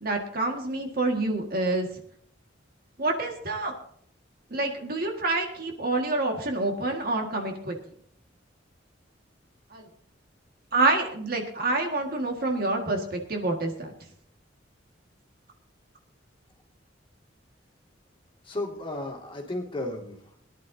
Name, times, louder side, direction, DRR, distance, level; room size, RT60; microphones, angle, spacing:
voice 1, 0.0-1.9 3.0-3.7 4.5-7.8 9.7-9.8 10.7-13.9, right 2 dB, 50° right, 2 dB, 1.8 m, -27 dB
voice 2, 18.4-20.4, left 2 dB, 25° left, 0 dB, 2.2 m, -34 dB
22.0 x 11.0 x 2.8 m, 0.63 s
head